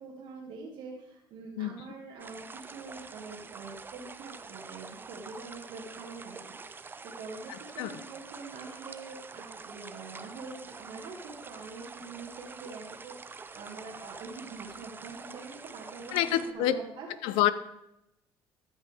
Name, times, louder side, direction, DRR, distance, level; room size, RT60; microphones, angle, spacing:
voice 1, 0.0-17.4, right 4 dB, 65° right, -3 dB, 1.6 m, -45 dB
sound 1, 2.2-16.5, right 4 dB, 25° right, 0.5 m, -46 dB
voice 2, 16.1-16.8 17.2-17.5, left 12 dB, 85° left, 15 dB, 0.5 m, -26 dB
13.5 x 5.6 x 3.4 m, 0.86 s
supercardioid pair, 85°, 9 cm